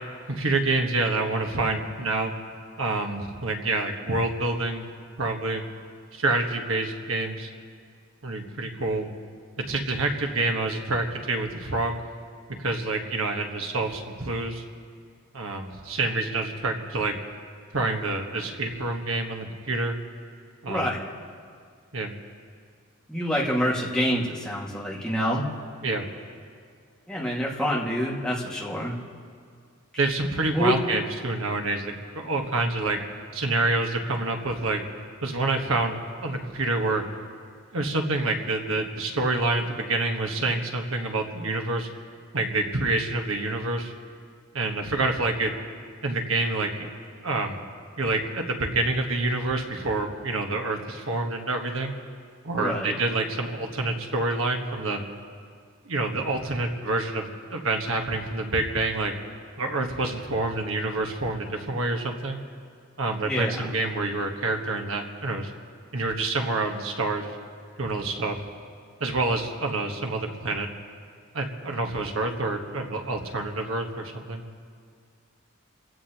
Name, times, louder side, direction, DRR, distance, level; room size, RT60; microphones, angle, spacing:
voice 1, 0.3-2.3 2.8-4.9 5.2-5.6 6.1-7.5 8.2-9.1 9.6-11.9 12.5-14.6 15.3-17.2 17.7-19.9 20.6-21.0 21.9-22.1 25.8-26.0 30.0-33.0 33.3-34.8 35.2-37.0 37.7-41.9 42.3-43.9 44.5-45.5 46.0-46.9 47.2-47.6 48.0-51.9 52.4-55.0 55.8-59.1 59.6-62.4 63.0-65.5 65.9-67.3 67.8-68.4 69.0-70.7 71.3-74.4, right 2 dB, 70° right, 3 dB, 1.3 m, -27 dB
voice 2, 20.6-21.1 23.1-25.5 27.1-28.9 30.5-30.8 52.6-52.9 63.2-63.7, equal, 5° left, -5 dB, 1.9 m, -27 dB
29.0 x 15.5 x 2.9 m, 2.1 s
head